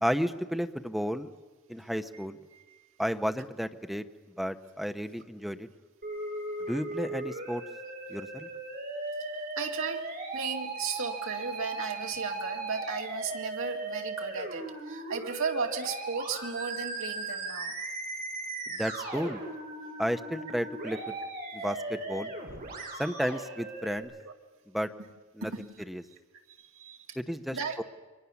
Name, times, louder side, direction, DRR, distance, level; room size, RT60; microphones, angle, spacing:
voice 1, 0.0-1.3 1.7-2.4 3.0-4.0 4.4-5.7 6.7-7.6 8.1-8.5 18.7-19.4 20.0-21.1 21.5-22.3 23.0-24.1 24.7-24.9 25.3-25.5 25.9-26.0 27.2-27.8, equal, ahead, 8 dB, 0.9 m, -32 dB
voice 2, 2.5-2.8 9.3-10.1 10.3-17.7 24.2-24.3 25.4-25.7 26.5-27.2 27.5-27.8, right 5 dB, 65° right, 3 dB, 2.5 m, -35 dB
Musical instrument, 6.0-24.0, right 2 dB, 45° right, 6.4 m, -38 dB
29.5 x 23.5 x 7.1 m, 1.3 s
head